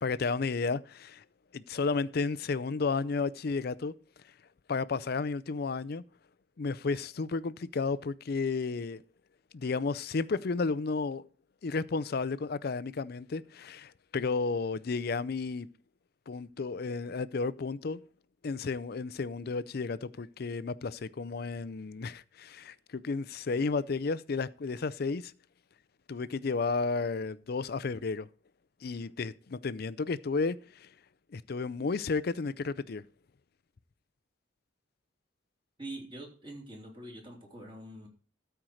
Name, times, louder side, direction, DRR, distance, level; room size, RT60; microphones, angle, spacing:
voice 1, 0.0-1.2 1.5-4.0 4.7-6.0 6.6-9.0 9.5-11.3 11.6-15.7 16.3-18.0 18.4-25.3 26.1-28.3 28.8-30.9 31.3-33.0, left 4 dB, 55° left, 0.5 m, -32 dB
voice 2, 35.8-38.1, right 1 dB, 25° right, 3.0 m, -44 dB
13.0 x 4.6 x 6.3 m
head